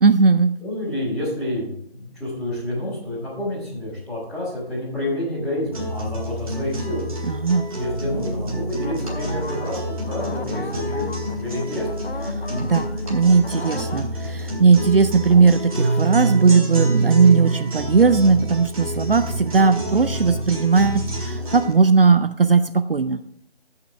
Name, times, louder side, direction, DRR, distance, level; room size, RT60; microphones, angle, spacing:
voice 1, 0.0-0.5 7.2-7.7 12.3-23.2, right 4 dB, 60° right, 12 dB, 0.5 m, -18 dB
voice 2, 0.6-7.1 7.8-11.1 11.3-11.9, left 1 dB, ahead, -15 dB, 1.8 m, -29 dB
sound 1, 5.7-21.7, right 1 dB, 35° right, 1.9 m, -27 dB
sound 2, 8.8-14.0, left 3 dB, 65° left, 0.9 m, -37 dB
14.0 x 5.7 x 3.4 m, 0.72 s
figure-of-eight pair, 165°, 32 cm